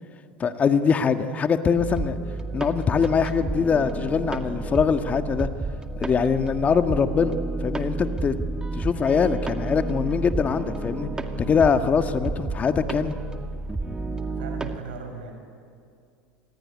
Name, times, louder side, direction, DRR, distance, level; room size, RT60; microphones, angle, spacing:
voice 1, 0.4-2.2 2.5-5.5 6.0-7.4 7.6-8.3 8.8-11.1 11.5-13.1, left 6 dB, 30° left, 7 dB, 1.7 m, -22 dB
sound 1, 1.8-14.8, right 2 dB, 15° right, 2.2 m, -31 dB
voice 2, 14.2-15.3, right 5 dB, 90° right, 5 dB, 6.4 m, -38 dB
27.0 x 21.0 x 9.7 m, 2.4 s
supercardioid pair, 100°, 5 cm